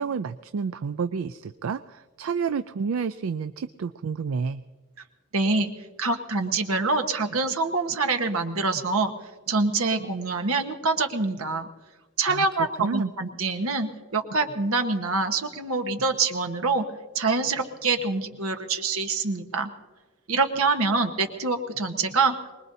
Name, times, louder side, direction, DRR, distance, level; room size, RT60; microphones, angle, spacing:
voice 1, 0.0-4.6 12.3-12.5 12.8-13.1, right 5 dB, 70° right, 12 dB, 0.4 m, -30 dB
voice 2, 5.3-5.7 6.0-9.1 9.5-11.7 12.2-16.8 17.1-19.7 20.3-22.5, right 3 dB, 85° right, 6 dB, 1.2 m, -25 dB
24.0 x 20.5 x 2.7 m, 1.3 s
head